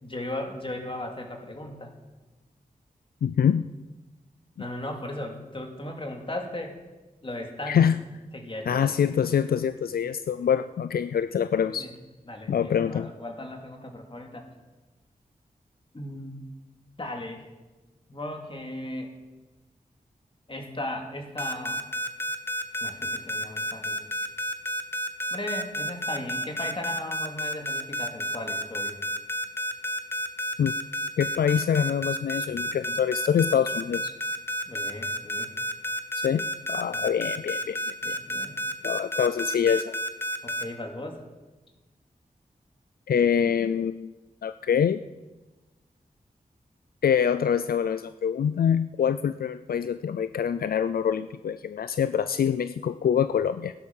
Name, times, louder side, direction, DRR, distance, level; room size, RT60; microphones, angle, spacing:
voice 1, 0.0-1.9 4.6-6.8 7.2-7.9 8.3-8.9 11.6-11.9 12.3-14.5 15.9-16.4 17.0-17.4 18.1-19.1 20.5-21.8 22.8-24.0 25.3-29.0 33.9-34.0 34.7-35.5 36.9-37.1 38.0-38.6 40.4-41.2, left 1 dB, 35° left, 2 dB, 2.5 m, -37 dB
voice 2, 3.2-3.7 7.7-8.0 8.7-11.9 12.5-13.1 30.6-30.8 31.2-34.1 36.1-38.2 38.8-39.9 43.1-44.1 44.4-45.0 47.0-53.7, left 8 dB, 80° left, 12 dB, 0.4 m, -25 dB
sound 1, 21.4-40.6, equal, 15° left, 1.2 m, -30 dB
15.5 x 11.5 x 5.4 m, 1.2 s
wide cardioid pair, 60°, 15 cm